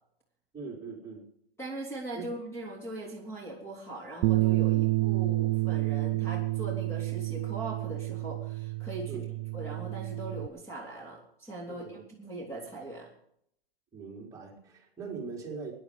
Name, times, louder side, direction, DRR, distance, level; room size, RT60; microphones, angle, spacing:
voice 1, 0.5-1.3 2.1-2.2 9.1-9.3 11.7-12.0 13.9-15.7, right 5 dB, 10° right, -3 dB, 4.2 m, -41 dB
voice 2, 1.6-9.2 9.5-13.1, right 2 dB, 10° left, -2 dB, 3.5 m, -40 dB
Bass guitar, 4.2-10.5, right 18 dB, 30° right, 0.5 m, -29 dB
17.5 x 10.5 x 5.1 m, 0.68 s
hypercardioid pair, 135°, 30 cm